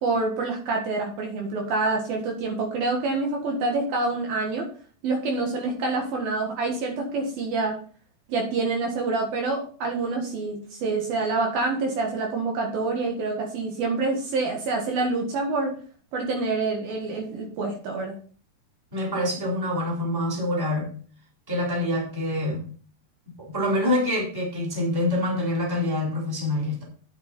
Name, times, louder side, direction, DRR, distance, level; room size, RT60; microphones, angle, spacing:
voice 1, 0.0-4.7 5.0-7.8 8.3-15.7 16.1-18.1, right 3 dB, 65° right, 1 dB, 3.3 m, -27 dB
voice 2, 18.9-20.9 21.5-22.6 23.4-26.8, left 1 dB, 5° right, -3 dB, 3.0 m, -26 dB
9.8 x 8.1 x 4.1 m, 0.43 s
omnidirectional pair, 4.9 m